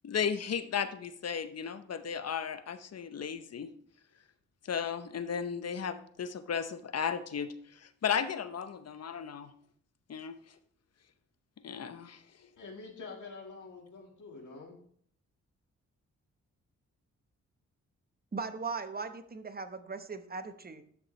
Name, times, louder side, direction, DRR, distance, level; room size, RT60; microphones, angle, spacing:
voice 1, 0.0-3.7 4.6-9.5 10.1-10.4 11.6-12.2, left 7 dB, 50° left, 11 dB, 0.8 m, -35 dB
voice 2, 12.6-14.8, left 4 dB, 70° left, -1 dB, 1.9 m, -46 dB
voice 3, 18.3-20.8, right 4 dB, 30° right, 10 dB, 1.0 m, -39 dB
11.5 x 6.5 x 3.2 m, 0.62 s
cardioid pair, 60°, 31 cm